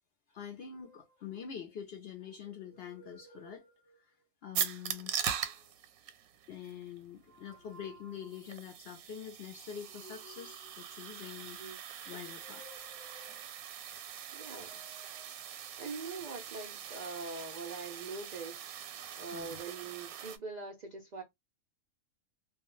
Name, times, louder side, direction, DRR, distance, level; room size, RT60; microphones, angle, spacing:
voice 1, 0.3-3.6 4.0-4.1 4.4-5.2 6.5-11.6 12.1-12.9 19.3-19.6, left 8 dB, 65° left, 0.6 m, -45 dB
sound 1, 0.8-1.7 2.2-4.3 4.9-5.8 7.1-8.6 9.7-11.4 11.9-13.7 14.3-15.8 16.7-18.6 19.1-19.7, equal, 5° left, 0.6 m, -60 dB
sound 2, 4.5-20.4, right 9 dB, 85° right, 1.0 m, -42 dB
voice 2, 14.3-14.8 15.8-21.2, right 4 dB, 70° right, 0.4 m, -43 dB
2.3 x 2.2 x 2.9 m
omnidirectional pair, 1.5 m